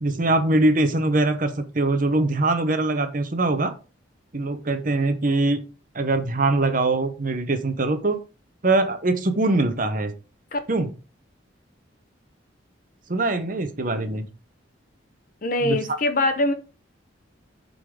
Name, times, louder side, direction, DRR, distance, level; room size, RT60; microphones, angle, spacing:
voice 1, 0.0-3.7 4.3-5.6 5.9-8.2 8.6-10.1 10.7-10.9 13.1-14.3 15.6-15.8, right 2 dB, 45° right, 9 dB, 0.9 m, -22 dB
voice 2, 15.4-16.5, left 2 dB, 45° left, 8 dB, 0.9 m, -22 dB
8.1 x 4.0 x 4.9 m, 0.33 s
head